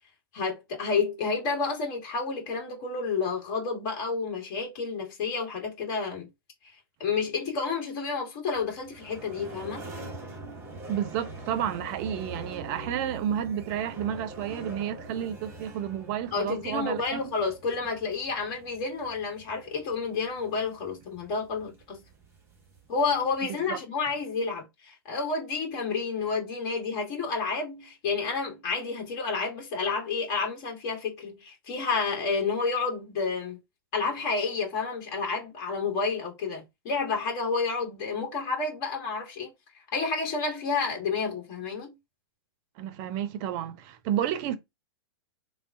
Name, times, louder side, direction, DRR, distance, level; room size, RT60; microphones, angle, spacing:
voice 1, 0.3-6.3 6.6-9.8 16.3-22.0 22.9-33.6 33.9-39.5 39.9-41.9, left 4 dB, 45° left, 1.2 m, -30 dB
sound 1, 8.5-23.4, right 2 dB, 20° right, 1.0 m, -44 dB
voice 2, 10.9-17.2 23.7-23.8 42.8-44.6, right 10 dB, 40° right, 0.5 m, -31 dB
3.5 x 2.1 x 2.5 m
figure-of-eight pair, 110°, 13 cm